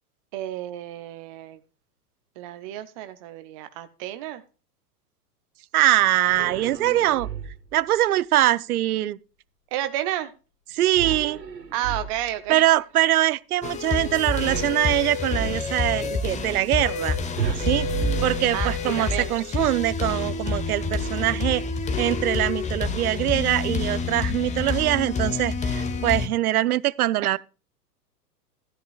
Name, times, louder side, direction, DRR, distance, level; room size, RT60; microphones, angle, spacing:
voice 1, 0.3-1.6 2.4-4.4 9.7-10.3 11.7-12.6 18.5-19.3, right 13 dB, 25° right, 0.4 m, -31 dB
voice 2, 5.7-7.3 7.7-9.2 10.7-11.4 12.5-17.2 17.5-17.9 18.2-21.6 22.0-27.4, right 14 dB, 65° right, 0.6 m, -23 dB
sound 1, 6.2-7.8 10.9-12.5 14.4-15.7 17.4-19.1, right 7 dB, 90° right, 1.4 m, -32 dB
sound 2, 13.6-26.3, left 4 dB, 15° left, 0.9 m, -28 dB
13.0 x 11.0 x 2.3 m
figure-of-eight pair, 105°, 48 cm